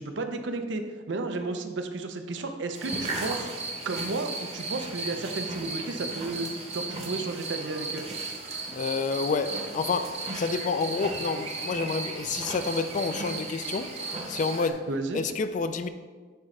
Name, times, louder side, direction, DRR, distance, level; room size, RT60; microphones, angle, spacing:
voice 1, 0.0-3.5 3.8-8.0 14.9-15.2, right 3 dB, 85° right, 0.6 m, -33 dB
sound 1, 2.7-14.7, right 3 dB, 35° right, 0.9 m, -35 dB
voice 2, 8.7-14.0 14.3-14.9 15.1-15.9, left 4 dB, 45° left, 0.3 m, -29 dB
10.0 x 3.7 x 3.3 m
head